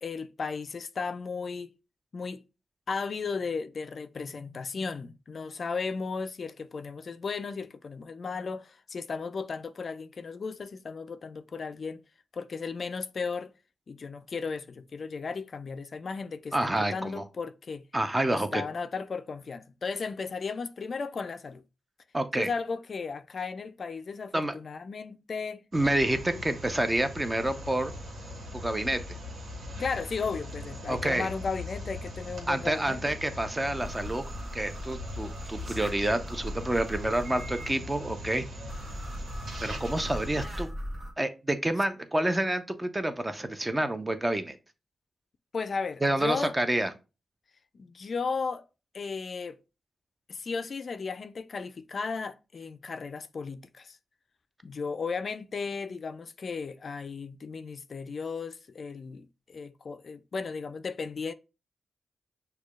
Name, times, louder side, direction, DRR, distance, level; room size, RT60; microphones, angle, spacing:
voice 1, 0.0-1.7 2.1-2.4 2.9-12.0 12.3-13.5 13.9-17.8 18.5-21.6 22.4-25.6 26.3-26.4 29.8-33.2 45.5-46.5 47.7-48.7 48.9-49.6 50.3-54.0 54.6-61.3, left 5 dB, 60° left, 0.3 m, -35 dB
voice 2, 16.5-17.2 17.9-18.6 22.1-22.5 24.3-24.5 25.7-27.9 28.5-29.1 30.9-31.3 32.5-34.2 34.5-38.4 39.6-40.7 41.2-44.6 46.0-46.9, right 1 dB, 20° right, 0.6 m, -28 dB
sound 1, 25.7-40.5, left 1 dB, 75° right, 1.2 m, -40 dB
sound 2, 33.8-37.7 38.7-41.1, equal, 40° right, 1.1 m, -40 dB
6.1 x 2.2 x 2.3 m
cardioid pair, 60°, 0 cm